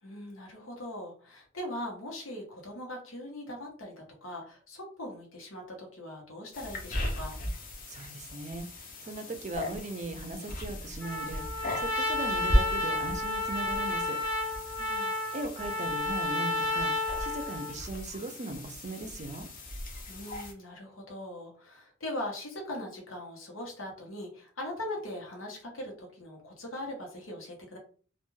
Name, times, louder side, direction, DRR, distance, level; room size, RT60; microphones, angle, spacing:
voice 1, 0.0-7.4 14.8-15.2 20.1-27.8, left 1 dB, 90° left, 0 dB, 0.9 m, -40 dB
sound 1, 6.5-20.5, left 1 dB, 45° left, 0.6 m, -36 dB
voice 2, 7.9-14.2 15.3-16.9 17.2-19.5, right 2 dB, 35° right, 7 dB, 0.4 m, -39 dB
Trumpet, 11.0-17.8, left 2 dB, 70° left, 1.2 m, -31 dB
2.3 x 2.2 x 3.1 m, 0.41 s
head